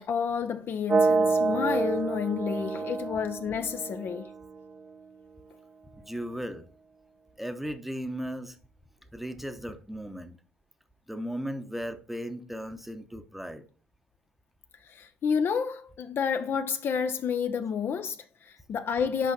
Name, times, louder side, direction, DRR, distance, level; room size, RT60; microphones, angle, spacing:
voice 1, 0.0-4.3 14.9-19.3, left 6 dB, 45° left, 0.5 m, -30 dB
sound 1, 0.9-4.8, right 4 dB, 30° right, 0.5 m, -28 dB
voice 2, 6.0-6.7 7.4-8.6 9.1-10.3 11.1-13.7, equal, 5° right, 0.8 m, -36 dB
6.1 x 5.1 x 4.2 m
hypercardioid pair, 55°, 5 cm